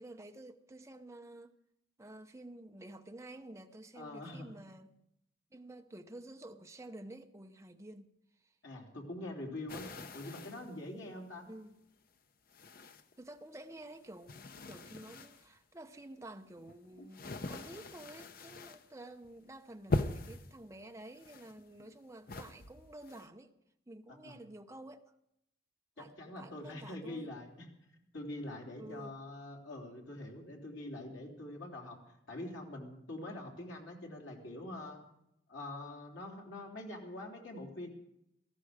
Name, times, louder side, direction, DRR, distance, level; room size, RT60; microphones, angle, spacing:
voice 1, 0.0-1.5 2.0-5.0 5.5-8.1 11.4-11.7 13.2-23.5 23.9-25.0 26.0-27.3 28.8-29.1, right 1 dB, 15° right, 0.7 m, -51 dB
voice 2, 3.9-4.5 8.6-9.9 10.1-11.5 24.1-24.4 26.0-27.7 28.1-32.0 32.3-35.0 35.5-37.9, left 1 dB, 85° left, 3.1 m, -44 dB
sound 1, 9.7-10.7 11.4-11.5 12.5-13.4 13.7-15.5 16.2-18.9 19.2-19.5 19.9-20.5 21.1-22.0 22.3-23.3, left 2 dB, 50° left, 0.7 m, -41 dB
17.5 x 14.5 x 5.0 m
head